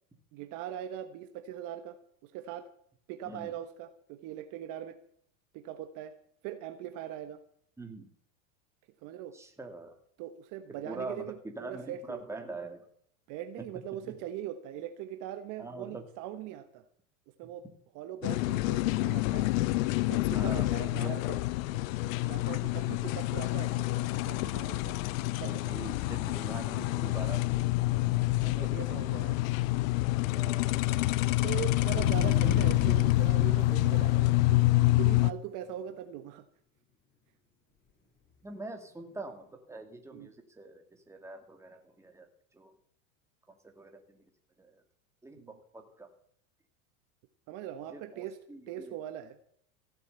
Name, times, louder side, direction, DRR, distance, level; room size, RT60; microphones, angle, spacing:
voice 1, 0.3-2.7 3.1-5.0 5.5-6.1 6.4-7.4 9.0-9.4 10.2-12.2 13.3-16.8 17.4-17.6 17.9-19.6 20.0-21.4 22.2-25.0 25.4-25.9 28.3-29.4 31.4-36.4 40.1-40.3 45.4-45.5 47.5-48.4 48.7-49.4, right 11 dB, 45° right, 8 dB, 1.4 m, -41 dB
voice 2, 7.8-8.1 9.3-9.9 10.8-12.8 14.0-14.2 15.6-16.0 20.3-21.1 24.8-24.9 25.5-27.6 28.5-28.7 30.3-31.0 38.4-42.3 42.5-42.7 43.5-44.2 44.6-44.8 45.2-45.4 45.7-46.1 47.9-49.0, right 2 dB, 5° right, 3 dB, 2.4 m, -44 dB
sound 1, 18.2-35.3, left 18 dB, 70° left, 0.7 m, -27 dB
sound 2, 31.9-35.3 35.6-35.7, left 2 dB, 25° left, 7.2 m, -39 dB
15.5 x 7.8 x 8.2 m, 0.64 s
supercardioid pair, 130°, 42 cm